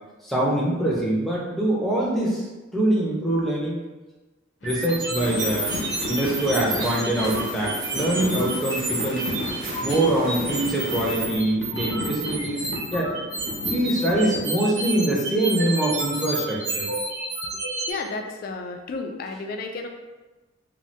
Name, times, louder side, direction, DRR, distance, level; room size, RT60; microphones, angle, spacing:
voice 1, 0.2-2.4 2.7-3.8 4.6-5.7 6.1-9.2 9.8-12.7 12.9-13.1 13.7-16.9, right 1 dB, ahead, -5 dB, 0.6 m, -24 dB
sound 1, 4.6-14.4, left 1 dB, 70° left, 0.7 m, -33 dB
sound 2, 4.6-17.9, right 2 dB, 60° right, 0.6 m, -30 dB
sound 3, 5.1-11.2, right 1 dB, 80° right, 1.0 m, -40 dB
voice 2, 17.9-19.9, left 3 dB, 50° left, 4 dB, 0.3 m, -32 dB
2.8 x 2.2 x 3.1 m, 1.2 s
head